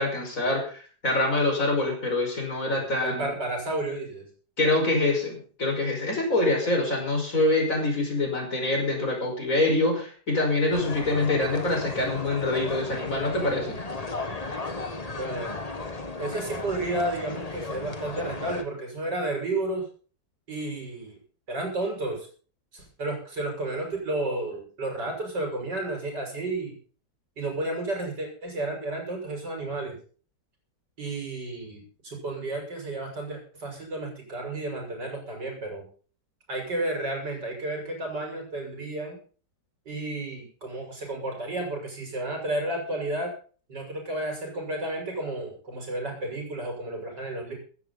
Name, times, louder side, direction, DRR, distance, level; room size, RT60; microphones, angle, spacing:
voice 1, 0.0-3.3 4.6-13.8, left 2 dB, 45° left, 2 dB, 5.7 m, -25 dB
voice 2, 2.7-4.3 15.1-15.5 16.2-19.8 20.5-21.2 21.5-22.3 22.7-26.7 27.4-30.0 31.0-35.9 36.5-39.2 39.9-43.3 43.7-47.5, right 2 dB, 65° right, 1 dB, 6.8 m, -32 dB
sound 1, 10.7-18.6, left 3 dB, 20° left, 1.4 m, -35 dB
15.5 x 14.0 x 4.1 m, 0.40 s
omnidirectional pair, 2.0 m